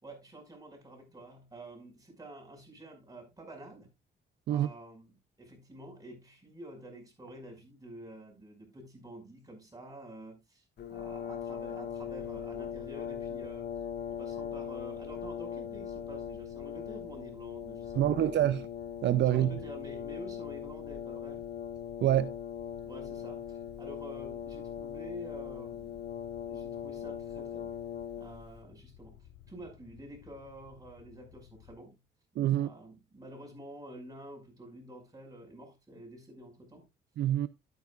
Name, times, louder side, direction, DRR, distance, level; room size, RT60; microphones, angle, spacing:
voice 1, 0.0-3.9 4.5-5.1 5.4-10.6 10.9-13.7 14.1-18.3 19.3-21.5 22.8-25.9 26.4-27.8 28.2-32.0 32.5-36.9, right 1 dB, 20° right, 5.7 m, -49 dB
Brass instrument, 10.8-28.6, left 9 dB, 55° left, 1.5 m, -40 dB
sound 1, 11.9-31.8, left 9 dB, 85° left, 1.1 m, -57 dB
voice 2, 18.0-18.7 19.0-19.5 22.0-22.3 32.4-32.7 37.2-37.5, right 12 dB, 65° right, 0.5 m, -26 dB
12.0 x 9.2 x 2.4 m
cardioid pair, 90°, 20 cm